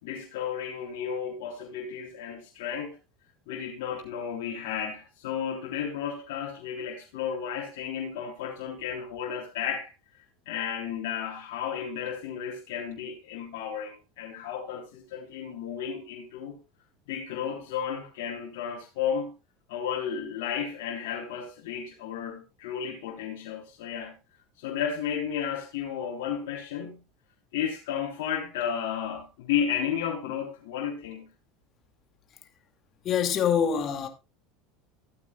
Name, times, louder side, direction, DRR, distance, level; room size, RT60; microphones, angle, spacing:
voice 1, 0.0-2.9 3.5-9.9 10.4-16.6 17.1-19.3 19.7-24.2 24.6-27.0 27.5-31.3, left 8 dB, 75° left, 3.4 m, -33 dB
voice 2, 33.0-34.1, left 8 dB, 40° left, 2.2 m, -25 dB
15.5 x 8.8 x 2.3 m
supercardioid pair, 100°, 0 cm